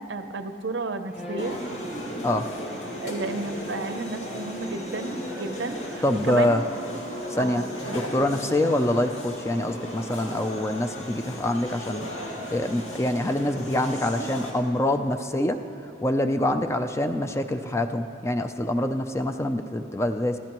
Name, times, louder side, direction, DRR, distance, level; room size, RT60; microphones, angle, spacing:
voice 1, 0.0-1.6 3.0-6.6 7.4-8.0 16.4-16.6, right 3 dB, 70° right, 9 dB, 0.7 m, -32 dB
Bowed string instrument, 1.1-6.9, left 1 dB, 35° left, 1.7 m, -40 dB
sound 1, 1.4-14.5, equal, 85° left, 2.3 m, -36 dB
voice 2, 6.0-6.6 7.3-7.6 7.9-12.1 12.5-15.6 16.0-20.4, left 1 dB, 15° left, 7 dB, 0.4 m, -25 dB
22.5 x 15.5 x 3.0 m, 2.8 s
head